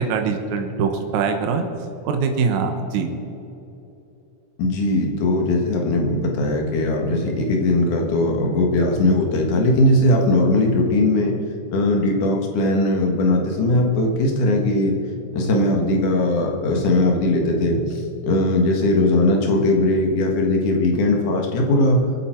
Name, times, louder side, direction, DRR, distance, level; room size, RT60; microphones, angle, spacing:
voice 1, 0.0-1.7 2.0-3.1, right 5 dB, 70° right, 5 dB, 2.5 m, -22 dB
voice 2, 4.6-11.4 11.7-15.0 15.3-22.0, left 1 dB, 70° left, 1 dB, 3.1 m, -19 dB
24.5 x 9.1 x 4.5 m, 3.0 s
omnidirectional pair, 3.7 m